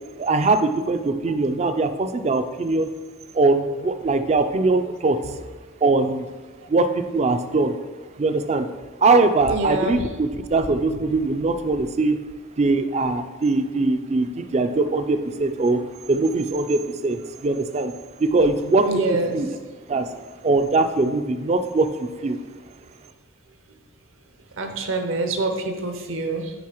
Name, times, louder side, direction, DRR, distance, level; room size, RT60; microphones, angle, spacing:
voice 1, 0.2-2.9 3.3-5.2 5.8-6.3 6.7-7.8 8.2-8.7 9.0-12.2 12.6-17.9 18.2-19.5 19.9-20.2 20.4-22.4, right 3 dB, 30° right, 9 dB, 0.3 m, -21 dB
voice 2, 9.5-10.0 18.8-19.4 24.6-26.5, right 2 dB, 65° right, 5 dB, 0.7 m, -25 dB
9.4 x 3.7 x 3.0 m, 1.3 s
head